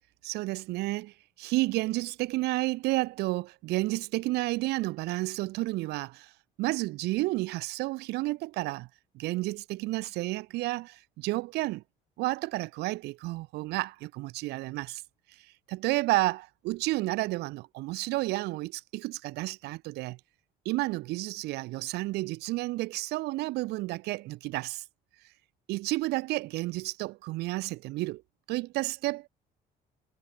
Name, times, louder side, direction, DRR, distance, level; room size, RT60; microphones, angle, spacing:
voice 1, 0.2-6.3 6.6-8.9 9.1-11.8 12.2-15.0 15.7-20.2 20.7-24.8 25.7-28.2 28.5-29.3, right 20 dB, 75° right, 0.4 m, -31 dB
cardioid pair, 110°, 17 cm